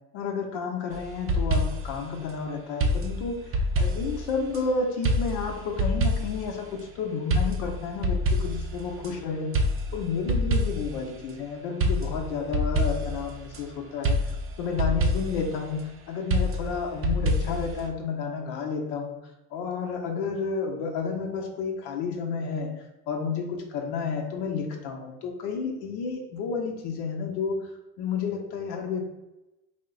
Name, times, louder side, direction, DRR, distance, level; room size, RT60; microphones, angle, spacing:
voice 1, 0.1-9.5 9.9-19.2 19.5-27.7 28.0-29.1, left 5 dB, 85° left, 2 dB, 0.7 m, -31 dB
sound 1, 0.9-2.0 2.8-4.6 5.0-6.5 7.3-9.1 9.5-11.0 11.8-13.6 14.0-15.5 16.3-17.9, equal, 35° right, 0.5 m, -26 dB
3.6 x 2.1 x 3.7 m, 0.97 s
supercardioid pair, 105°, 40 cm